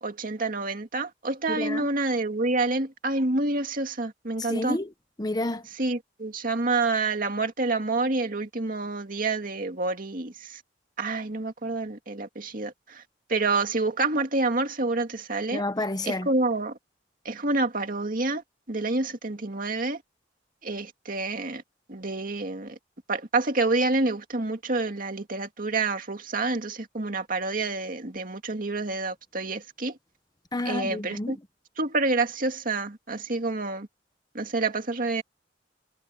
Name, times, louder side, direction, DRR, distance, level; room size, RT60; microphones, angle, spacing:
voice 1, 0.0-4.8 5.8-10.6 11.0-13.0 13.3-15.6 16.0-16.7 17.2-20.0 20.6-21.6 21.9-22.8 23.1-30.0 30.7-31.4 31.8-33.9 34.3-35.2, right 3 dB, 50° right, 2.3 m, -28 dB
voice 2, 1.5-1.9 4.4-4.9 5.2-5.7 15.5-16.3 30.5-31.4, left 2 dB, 25° left, 1.1 m, -30 dB
head